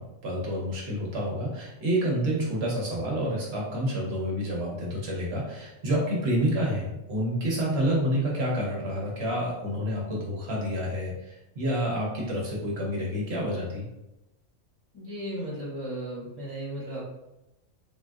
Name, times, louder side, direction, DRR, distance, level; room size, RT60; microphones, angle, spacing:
voice 1, 0.0-13.9, equal, 60° right, -3 dB, 0.9 m, -28 dB
voice 2, 14.9-17.0, right 1 dB, 25° left, -9 dB, 0.5 m, -35 dB
3.4 x 2.5 x 2.3 m, 0.93 s
omnidirectional pair, 1.4 m